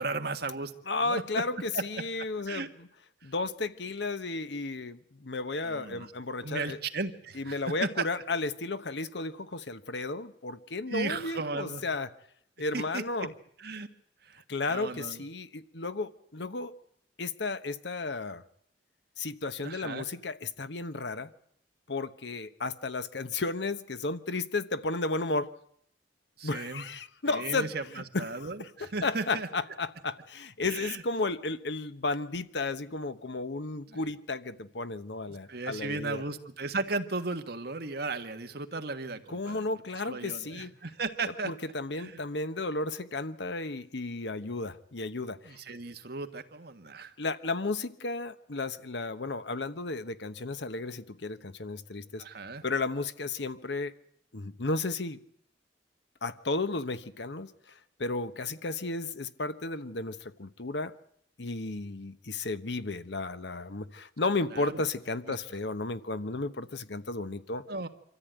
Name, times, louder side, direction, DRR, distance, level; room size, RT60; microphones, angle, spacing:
voice 1, 0.0-1.2 1.7-1.8 2.5-2.7 3.2-3.3 5.6-6.1 6.4-8.0 10.9-11.8 12.7-13.0 13.6-13.9 14.2-15.2 19.6-20.0 26.4-26.8 27.2-29.5 30.7-31.0 33.9-34.1 35.3-39.7 40.0-41.5 41.9-42.2 45.4-47.1 52.2-52.6 64.5-64.8 65.3-65.4 67.7-67.9, right 3 dB, 60° right, 1.6 m, -36 dB
voice 2, 0.9-2.7 3.2-6.8 7.4-12.1 12.6-13.3 14.5-16.7 17.2-18.4 19.2-21.3 21.9-25.5 26.4-36.2 39.3-40.7 41.4-45.5 47.2-52.2 52.6-53.9 54.3-55.2 56.2-57.5 58.0-60.9 61.4-67.6, left 3 dB, 70° left, 1.1 m, -33 dB
25.5 x 14.0 x 9.2 m
head